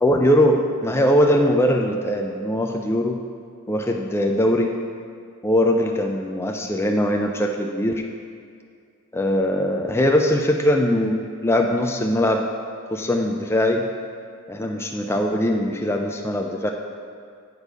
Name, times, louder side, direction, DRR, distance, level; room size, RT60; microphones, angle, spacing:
voice 1, 0.0-3.2 3.7-4.8 5.4-8.0 9.1-11.2 11.4-12.5 12.9-13.9 14.5-16.7, left 1 dB, 10° left, 1 dB, 0.4 m, -21 dB
8.2 x 4.7 x 5.3 m, 2.2 s
head